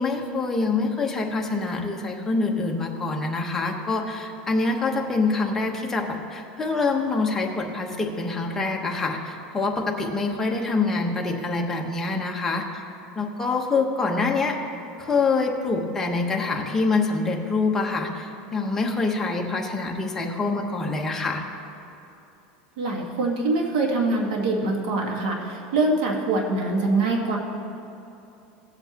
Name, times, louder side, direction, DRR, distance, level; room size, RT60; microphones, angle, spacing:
voice 1, 0.0-12.8 13.2-14.6 15.0-21.4, left 3 dB, 10° left, 0 dB, 1.0 m, -25 dB
voice 2, 22.8-27.4, right 2 dB, 85° right, 0 dB, 1.5 m, -24 dB
17.5 x 7.9 x 2.9 m, 2.9 s
supercardioid pair, 160°, 4 cm